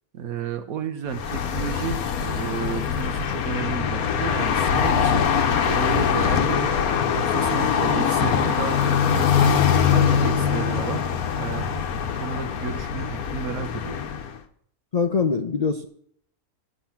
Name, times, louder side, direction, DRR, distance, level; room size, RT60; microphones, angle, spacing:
voice 1, 0.1-5.3 5.7-6.8 7.1-9.5 9.9-11.0 11.3-11.9 12.1-14.0, right 6 dB, 80° right, 7 dB, 1.3 m, -32 dB
sound 1, 1.1-14.4, left 7 dB, 85° left, 1.3 m, -23 dB
voice 2, 14.9-15.9, left 5 dB, 60° left, 7 dB, 0.4 m, -23 dB
9.1 x 8.5 x 5.8 m, 0.65 s
omnidirectional pair, 1.5 m